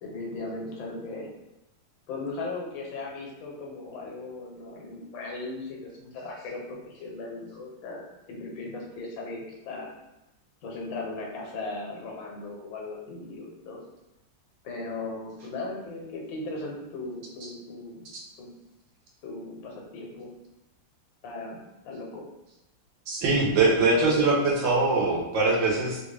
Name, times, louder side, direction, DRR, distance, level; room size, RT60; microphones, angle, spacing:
voice 1, 0.0-1.3 2.1-9.9 10.6-13.8 14.6-18.0 18.4-18.5 19.2-20.3 21.2-21.6 21.8-22.3 23.7-24.6, left 2 dB, 85° left, -1 dB, 1.5 m, -37 dB
voice 2, 23.1-26.0, right 3 dB, 85° right, -4 dB, 1.6 m, -22 dB
3.7 x 2.2 x 3.3 m, 0.96 s
omnidirectional pair, 2.0 m